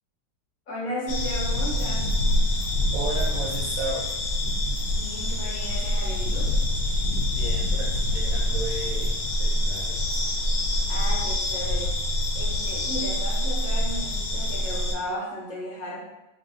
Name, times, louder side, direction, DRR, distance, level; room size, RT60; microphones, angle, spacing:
voice 1, 0.7-2.1 4.9-6.5 10.9-11.9 12.3-16.0, equal, 60° left, -6 dB, 1.2 m, -34 dB
sound 1, 1.1-15.0, left 1 dB, 75° left, 1.3 m, -25 dB
voice 2, 2.9-4.1 7.3-10.0, right 2 dB, 60° right, -3 dB, 1.0 m, -34 dB
3.3 x 2.6 x 3.8 m, 0.98 s
omnidirectional pair, 1.9 m